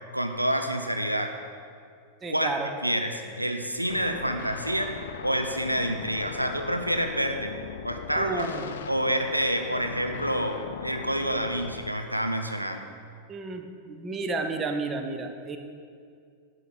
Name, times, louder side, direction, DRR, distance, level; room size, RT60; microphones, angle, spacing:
voice 1, 0.1-1.3 2.3-2.5 2.8-4.9 5.2-7.5 7.8-8.5 8.9-12.8, right 1 dB, 90° right, 5 dB, 0.5 m, -28 dB
voice 2, 2.2-2.7 8.2-8.7 13.3-15.6, right 3 dB, 20° right, 5 dB, 0.8 m, -32 dB
sound 1, 3.9-11.9, left 8 dB, 60° left, 0.4 m, -39 dB
10.5 x 4.9 x 5.8 m, 2.2 s
figure-of-eight pair, 90°, 0 cm